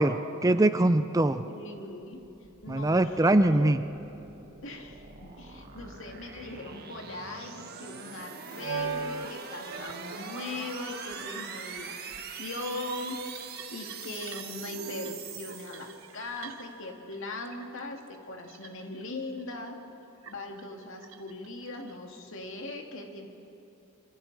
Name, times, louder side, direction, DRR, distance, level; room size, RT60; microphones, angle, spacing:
voice 1, 0.0-1.4 2.7-3.8, right 1 dB, 15° right, 10 dB, 0.5 m, -23 dB
voice 2, 1.4-2.2 2.6-3.7 4.6-12.0 12.4-13.2 13.7-18.0 18.3-19.8 20.3-23.3, left 2 dB, 65° left, 2 dB, 2.2 m, -40 dB
sound 1, 1.9-16.3, right 6 dB, 45° right, 1.5 m, -43 dB
sound 2, 5.7-5.8 8.5-9.3 9.6-16.9 17.1-17.7 18.0-19.0 19.4-19.7 20.2-21.9, right 4 dB, 70° right, 1.1 m, -41 dB
26.0 x 25.5 x 4.1 m, 2.9 s
head